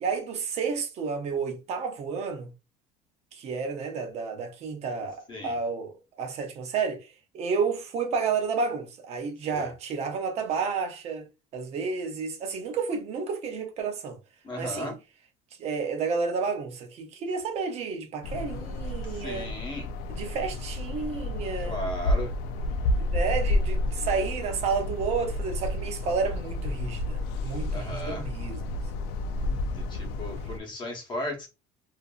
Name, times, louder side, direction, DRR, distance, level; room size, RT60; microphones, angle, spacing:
voice 1, 0.0-2.5 3.3-11.3 11.5-14.2 14.6-14.9 15.6-19.5 20.1-21.8 23.0-28.6 29.4-29.6, right 5 dB, 45° right, 0.7 m, -31 dB
voice 2, 14.4-15.0 19.1-19.9 21.6-22.3 24.0-24.1 27.7-28.3 29.6-31.5, left 1 dB, 30° left, 0.9 m, -36 dB
sound 1, 18.2-30.6, left 1 dB, 85° left, 0.4 m, -30 dB
2.6 x 2.5 x 2.3 m
cardioid pair, 160°, 15 cm